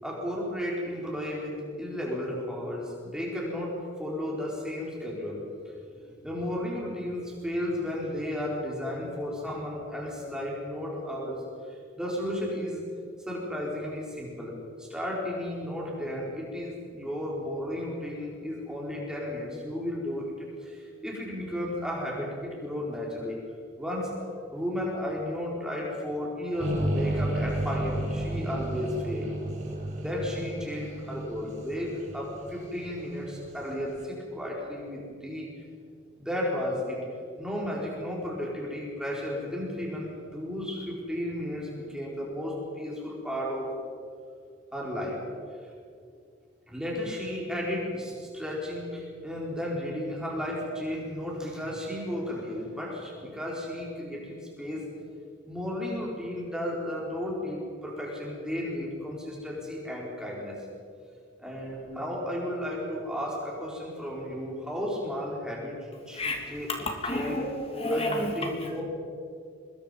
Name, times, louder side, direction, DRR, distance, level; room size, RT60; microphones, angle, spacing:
voice 1, 0.0-5.4 5.8-11.4 11.7-12.8 13.3-14.5 14.8-23.4 23.8-29.3 29.9-35.5 36.2-37.0 37.4-43.7 44.7-45.2 46.7-54.8 55.5-60.6 61.4-65.8 66.1-66.7 67.1-67.4 67.9-68.8, left 1 dB, 5° right, -4 dB, 5.0 m, -34 dB
sound 1, 26.6-33.7, right 1 dB, 40° right, 4.1 m, -32 dB
voice 2, 66.1-68.8, left 1 dB, 30° left, 3 dB, 2.6 m, -31 dB
24.5 x 21.0 x 5.4 m, 2.3 s
head